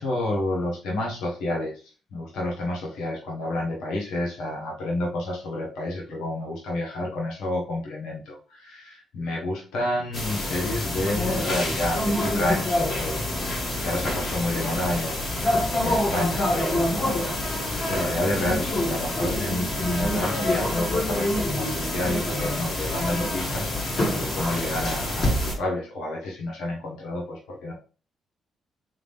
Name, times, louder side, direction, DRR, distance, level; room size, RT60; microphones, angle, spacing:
voice 1, 0.0-1.8 2.1-13.2 13.8-15.3 15.8-17.0 17.9-27.7, left 1 dB, 85° left, -2 dB, 1.4 m, -29 dB
sound 1, 10.1-25.5, left 1 dB, 50° left, 2.0 m, -26 dB
3.7 x 3.5 x 3.3 m, 0.36 s
cardioid pair, 90°, 0 cm